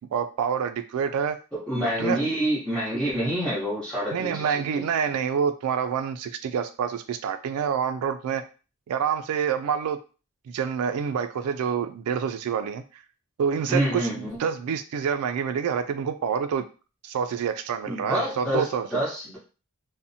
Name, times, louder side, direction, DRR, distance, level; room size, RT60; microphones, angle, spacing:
voice 1, 0.1-1.4 2.0-2.2 4.1-8.4 8.9-10.0 10.5-12.8 13.4-16.6 17.0-18.9, right 7 dB, 85° right, 11 dB, 0.3 m, -27 dB
voice 2, 1.5-4.8 13.7-14.3 17.9-19.4, equal, 5° left, -10 dB, 0.8 m, -27 dB
2.5 x 2.0 x 2.6 m, 0.34 s
head